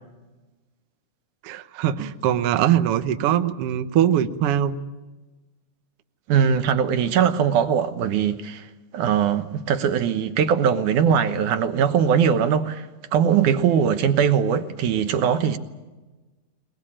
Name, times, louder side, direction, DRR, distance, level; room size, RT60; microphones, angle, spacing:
voice 1, 1.4-4.8, right 10 dB, 85° right, 1.2 m, -22 dB
voice 2, 6.3-8.7 8.9-15.6, right 7 dB, 70° right, 2.5 m, -21 dB
21.5 x 21.0 x 8.8 m
omnidirectional pair, 4.0 m